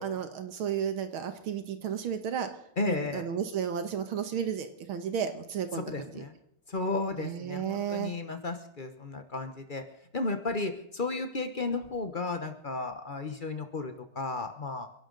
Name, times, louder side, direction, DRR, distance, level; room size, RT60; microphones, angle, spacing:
voice 1, 0.0-2.5 2.8-6.1 7.2-8.1, right 8 dB, 70° right, 8 dB, 2.0 m, -33 dB
voice 2, 2.8-3.3 5.7-6.3 6.7-9.8 10.1-14.9, left 3 dB, 50° left, 7 dB, 0.6 m, -34 dB
29.5 x 11.0 x 3.9 m, 0.75 s
omnidirectional pair, 2.4 m